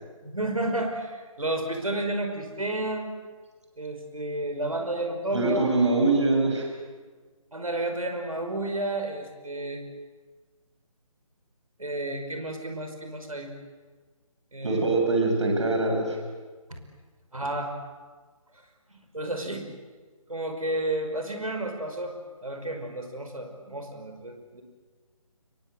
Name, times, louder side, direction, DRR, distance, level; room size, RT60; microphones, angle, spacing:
voice 1, 0.2-3.1 3.8-5.7 7.5-9.8 11.8-13.5 14.5-14.9 16.7-16.8 17.3-17.8 18.9-19.7 20.3-24.6, right 1 dB, 70° right, 5 dB, 5.5 m, -31 dB
voice 2, 5.3-6.7 14.6-16.2, right 2 dB, 55° right, 2 dB, 7.0 m, -23 dB
28.0 x 23.0 x 7.9 m, 1.4 s
figure-of-eight pair, 150°, 18 cm